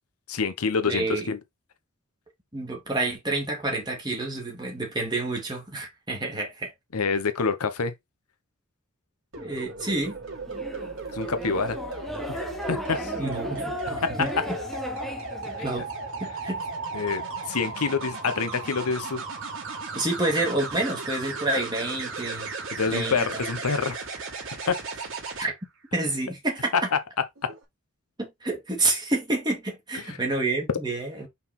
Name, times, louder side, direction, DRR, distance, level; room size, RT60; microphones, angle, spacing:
voice 1, 0.3-1.4 6.9-7.9 11.1-11.8 12.3-12.4 12.7-13.1 14.0-14.1 16.9-19.2 22.7-24.0 24.7-24.8 26.7-26.8 27.4-27.5 29.9-30.2, left 5 dB, 85° left, 1.0 m, -27 dB
voice 2, 0.9-1.3 2.5-6.7 9.4-10.2 13.2-14.3 15.6-15.9 16.2-16.6 19.9-22.5 22.9-23.4 25.4-25.5 25.9-26.7 28.2-31.3, right 2 dB, 20° right, 2.1 m, -28 dB
sound 1, 9.3-25.4 27.4-27.6, right 3 dB, 60° right, 2.8 m, -35 dB
sound 2, 10.5-15.8, equal, ahead, 0.8 m, -36 dB
5.5 x 4.1 x 4.2 m
head